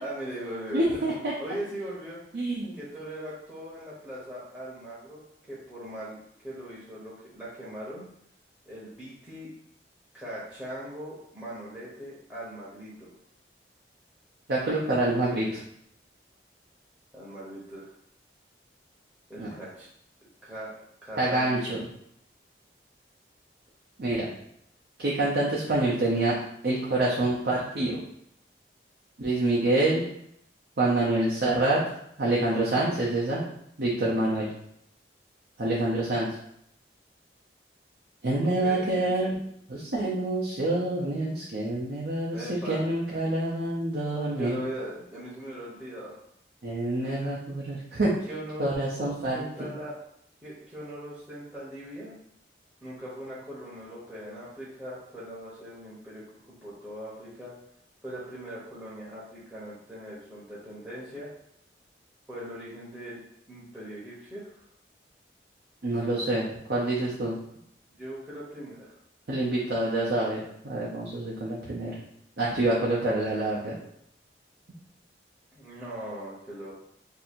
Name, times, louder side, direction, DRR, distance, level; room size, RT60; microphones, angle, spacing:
voice 1, 0.0-2.4 2.8-5.2 5.5-8.1 8.7-9.5 10.1-13.1 17.1-17.9 19.3-19.9 20.4-20.7 21.0-21.7 38.4-39.3 42.3-42.8 44.3-46.2 47.0-47.3 48.3-50.0 50.4-52.1 52.8-57.5 58.0-61.3 62.3-63.2 63.5-64.6 67.2-67.3 68.0-68.9 75.6-76.7, right 1 dB, 5° right, -9 dB, 0.7 m, -40 dB
voice 2, 0.7-1.3 2.3-2.8 14.5-15.6 19.4-19.5 21.2-21.8 24.0-24.3 25.0-26.4 26.6-28.0 29.2-30.0 30.8-31.8 32.2-33.4 33.8-34.5 35.6-36.4 38.2-39.3 39.7-44.6 46.6-48.1 48.6-49.7 65.8-67.4 69.3-71.9 72.4-73.7, right 2 dB, 60° right, -6 dB, 0.6 m, -27 dB
2.7 x 2.6 x 4.2 m, 0.72 s
head